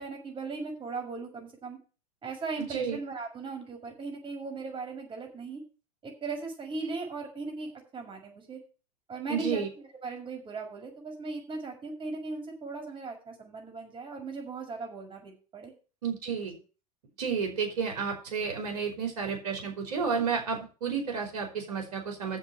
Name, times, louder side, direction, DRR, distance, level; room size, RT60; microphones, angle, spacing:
voice 1, 0.0-1.8 2.2-5.6 6.0-8.6 9.1-15.7, right 3 dB, 25° right, 3 dB, 6.4 m, -38 dB
voice 2, 9.3-9.7 16.0-16.5 17.2-22.4, right 6 dB, 75° right, 3 dB, 5.0 m, -31 dB
8.8 x 7.4 x 7.9 m, 0.35 s
hypercardioid pair, 105°, 20 cm